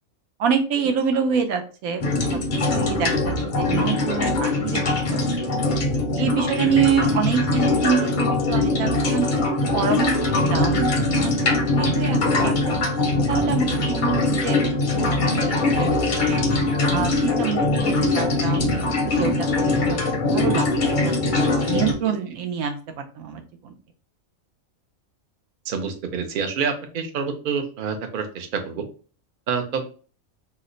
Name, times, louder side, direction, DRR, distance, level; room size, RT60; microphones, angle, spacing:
voice 1, 0.4-2.0 2.3-2.4 2.7-5.2 6.1-12.8 13.3-16.6 16.9-19.5 19.8-20.0 20.3-20.7 21.0-22.8 23.2-23.7, right 7 dB, 85° right, 6 dB, 1.1 m, -27 dB
sound 1, 2.0-21.9, left 2 dB, 50° left, 0.6 m, -22 dB
voice 2, 25.7-28.9 29.5-29.8, right 6 dB, 55° right, 5 dB, 0.5 m, -27 dB
2.8 x 2.1 x 3.7 m, 0.38 s
omnidirectional pair, 1.4 m